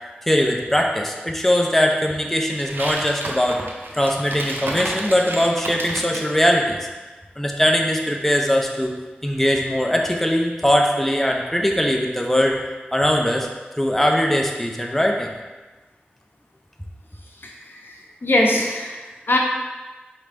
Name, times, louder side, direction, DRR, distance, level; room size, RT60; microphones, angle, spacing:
voice 1, 0.3-3.6 3.9-6.8 7.4-8.9 9.2-12.6 12.9-13.5 13.8-15.3, equal, 10° left, 0 dB, 0.5 m, -20 dB
sound 1, 2.6-6.3, right 1 dB, 75° right, 0.5 m, -31 dB
voice 2, 17.4-18.0 18.2-19.4, left 1 dB, 80° left, -1 dB, 0.7 m, -22 dB
4.9 x 3.2 x 3.3 m, 1.2 s
wide cardioid pair, 60°, 4 cm